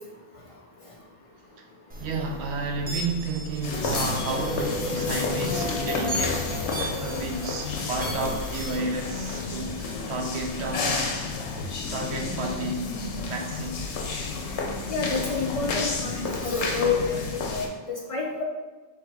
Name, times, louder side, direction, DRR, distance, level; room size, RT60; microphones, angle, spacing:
sound 1, 1.9-8.8, left 1 dB, 10° right, 0.4 m, -33 dB
voice 1, 2.0-6.5 7.0-11.0 11.9-12.9 13.3-13.9, right 3 dB, 70° right, 2 dB, 0.9 m, -32 dB
sound 2, 3.6-17.7, left 4 dB, 75° left, 0.9 m, -31 dB
voice 2, 14.9-18.4, left 4 dB, 55° left, -1 dB, 0.3 m, -28 dB
3.6 x 2.9 x 4.7 m, 1.2 s
omnidirectional pair, 1.2 m